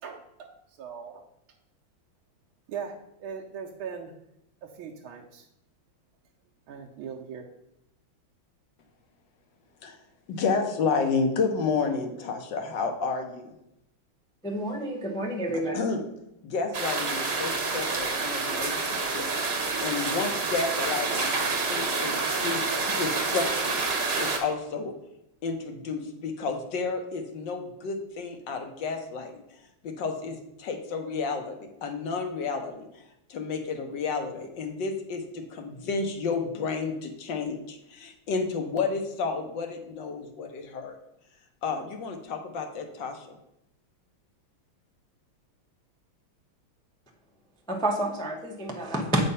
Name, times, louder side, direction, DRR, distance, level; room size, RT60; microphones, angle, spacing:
voice 1, 0.0-0.5 0.8-1.2 2.7-2.9 3.2-4.1 4.6-5.5 6.7-7.5, right 7 dB, 85° right, -1 dB, 1.6 m, -39 dB
voice 2, 10.3-13.5 15.7-16.0 16.4-19.3 19.8-22.1 22.4-23.8 24.2-24.9 25.4-29.4 29.8-32.9 33.3-41.0 41.6-43.2, left 4 dB, 65° left, 5 dB, 1.6 m, -31 dB
voice 3, 14.4-15.8 47.7-49.3, right 1 dB, 5° left, 1 dB, 0.3 m, -29 dB
sound 1, 16.7-24.4, right 3 dB, 40° right, 1.0 m, -28 dB
8.2 x 4.4 x 5.5 m, 0.84 s
omnidirectional pair, 2.2 m